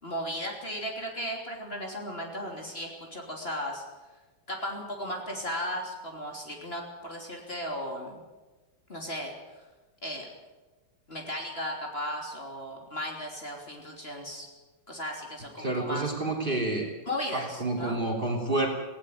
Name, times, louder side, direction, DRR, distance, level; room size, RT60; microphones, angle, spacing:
voice 1, 0.0-3.8 4.5-8.2 8.9-9.3 10.0-10.3 11.1-14.5 14.9-16.1 17.1-18.0, equal, 30° left, 1 dB, 3.5 m, -36 dB
voice 2, 15.6-16.9 17.3-18.7, right 2 dB, 25° right, 3 dB, 3.4 m, -29 dB
18.5 x 17.0 x 9.3 m, 1.2 s
omnidirectional pair, 2.0 m